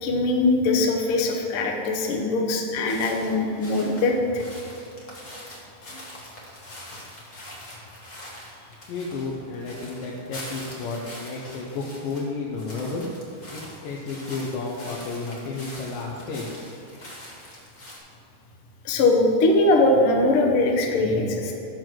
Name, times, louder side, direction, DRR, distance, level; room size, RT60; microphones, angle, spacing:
voice 1, 0.0-4.1 18.8-21.5, left 2 dB, 65° left, 0 dB, 1.4 m, -21 dB
sound 1, 2.8-12.3 12.5-18.0, left 1 dB, 40° left, 1.4 m, -43 dB
voice 2, 8.9-13.0 13.5-16.5, left 3 dB, 85° left, -3 dB, 2.5 m, -32 dB
7.0 x 6.1 x 7.6 m, 2.9 s
omnidirectional pair, 3.8 m